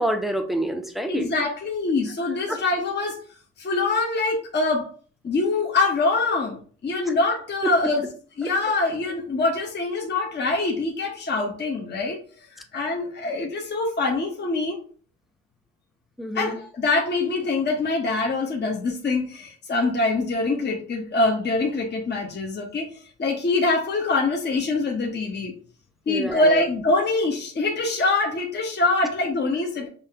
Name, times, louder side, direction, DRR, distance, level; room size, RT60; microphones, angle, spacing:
voice 1, 0.0-1.3 2.5-2.6 7.6-7.7 16.2-16.6 26.1-26.6, right 1 dB, ahead, 5 dB, 0.6 m, -27 dB
voice 2, 1.1-3.2 3.6-4.9 5.2-8.1 8.4-12.2 12.6-14.8 16.3-22.9 23.2-25.5 26.1-29.9, left 3 dB, 35° left, 0 dB, 0.9 m, -24 dB
5.5 x 2.3 x 2.8 m, 0.43 s
cardioid pair, 90°, 30 cm